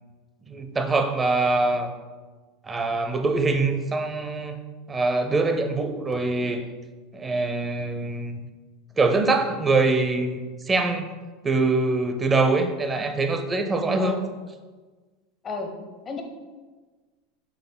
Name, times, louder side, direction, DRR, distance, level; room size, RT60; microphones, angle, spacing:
voice 1, 0.5-1.9 2.6-4.6 4.9-6.6 7.1-8.4 9.0-10.4 10.7-11.0 11.4-14.2, right 3 dB, 15° right, 6 dB, 0.6 m, -23 dB
voice 2, 14.0-14.2 15.4-15.7 16.0-16.2, left 4 dB, 25° left, 3 dB, 0.9 m, -31 dB
7.5 x 5.7 x 2.2 m, 1.3 s
supercardioid pair, 135°, 0 cm